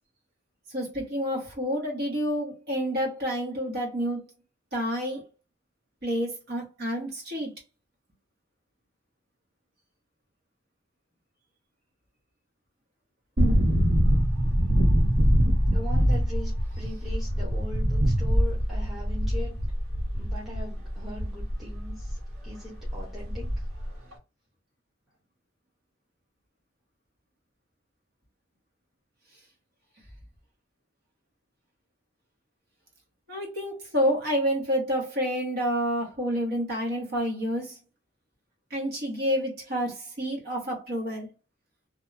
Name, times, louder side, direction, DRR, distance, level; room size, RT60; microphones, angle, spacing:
voice 1, 0.7-4.2 4.7-5.3 6.0-7.5 33.3-37.8 38.7-41.3, equal, 50° right, 1.1 m, -29 dB
sound 1, 13.4-22.2 22.5-22.6 22.8-23.9 24.1-24.2, equal, 85° right, 1.0 m, -24 dB
voice 2, 15.7-19.6 20.1-23.5, left 1 dB, ahead, 0.8 m, -40 dB
2.6 x 2.2 x 2.5 m
head